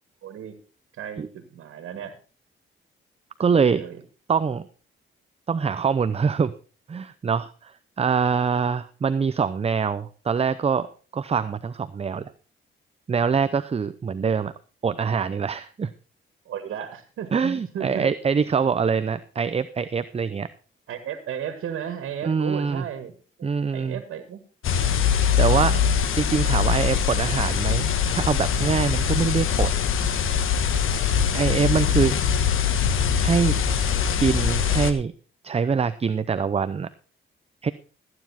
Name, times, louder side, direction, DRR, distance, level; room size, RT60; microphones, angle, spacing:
voice 1, 0.2-0.5 0.9-2.2 3.4-4.0 16.5-18.1 20.9-23.5 23.7-24.4 24.8-25.0 25.4-25.8 31.1-31.6, right 9 dB, 85° right, 7 dB, 1.9 m, -35 dB
voice 2, 3.4-3.8 4.3-4.6 5.5-6.5 6.9-10.9 11.1-12.3 13.1-14.5 14.8-15.9 17.3-20.5 22.2-22.8 23.4-24.0 25.4-25.7 26.2-29.7 31.3-32.2 33.1-33.6 34.2-35.1 35.4-36.9 37.6-37.7, right 6 dB, 30° right, 13 dB, 0.6 m, -24 dB
sound 1, 24.6-34.9, left 7 dB, 80° left, 1.3 m, -22 dB
14.0 x 9.5 x 4.3 m, 0.37 s
cardioid pair, 95°, 21 cm